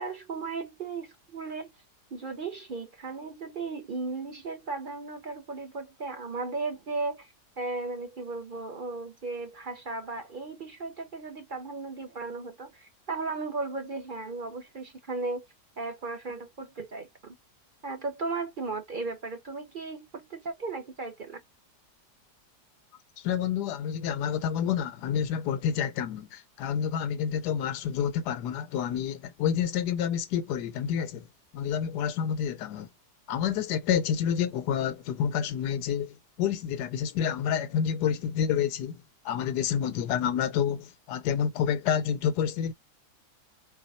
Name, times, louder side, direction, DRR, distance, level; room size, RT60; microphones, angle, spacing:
voice 1, 0.0-1.7 2.1-7.3 7.6-15.5 15.8-17.4 17.8-21.4, right 3 dB, 40° right, 0.8 m, -36 dB
voice 2, 23.2-31.3 31.5-32.9 33.3-42.7, left 8 dB, 85° left, 1.2 m, -29 dB
4.2 x 2.3 x 4.1 m
omnidirectional pair, 1.7 m